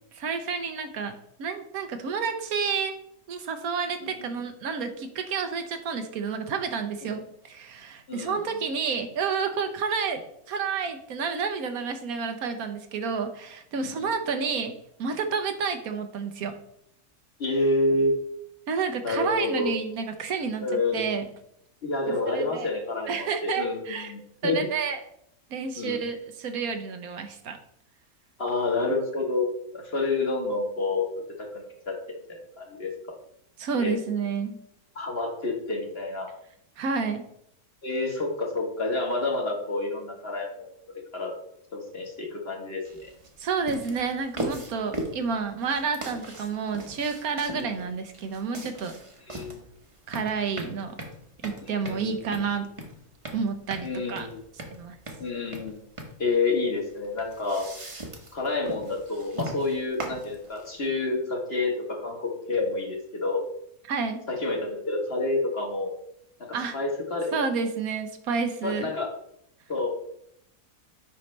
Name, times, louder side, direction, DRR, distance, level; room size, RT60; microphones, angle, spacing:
voice 1, 0.1-2.9 3.3-14.7 15.0-16.6 18.7-20.6 20.9-21.3 22.3-22.7 23.1-24.1 24.4-25.0 25.5-27.6 33.6-34.6 36.8-37.2 43.4-48.9 50.1-51.0 51.4-52.7 53.3-54.3 54.7-55.0 63.9-64.2 66.5-66.8 67.3-68.9, right 5 dB, 75° right, 7 dB, 1.2 m, -30 dB
voice 2, 8.1-8.4 13.8-14.1 17.4-18.1 19.0-19.7 20.6-21.0 21.8-24.6 25.7-26.0 28.4-29.5 29.7-31.1 31.4-32.0 32.6-32.9 33.8-34.0 34.9-36.3 37.8-40.7 41.1-41.3 41.7-43.1 47.5-47.7 49.3-49.6 51.6-52.4 53.8-54.4 55.2-55.8 56.2-57.7 58.3-63.4 64.3-65.9 66.7-67.4 68.6-69.1 69.7-69.9, left 2 dB, 45° left, 0 dB, 1.5 m, -28 dB
sound 1, 42.8-60.9, right 1 dB, 25° right, 0.9 m, -39 dB
8.2 x 5.5 x 3.2 m, 0.73 s
omnidirectional pair, 1.6 m